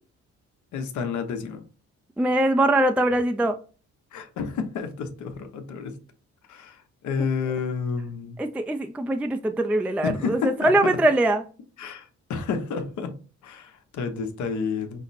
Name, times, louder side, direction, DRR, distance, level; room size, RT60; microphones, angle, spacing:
voice 1, 0.7-1.6 4.1-6.0 6.5-8.4 10.0-10.9 11.8-13.2 13.4-15.0, left 5 dB, 75° left, 1.0 m, -30 dB
voice 2, 2.2-3.6 8.4-11.4, right 1 dB, 5° right, 0.3 m, -22 dB
5.8 x 2.0 x 4.1 m
cardioid pair, 90°, 30 cm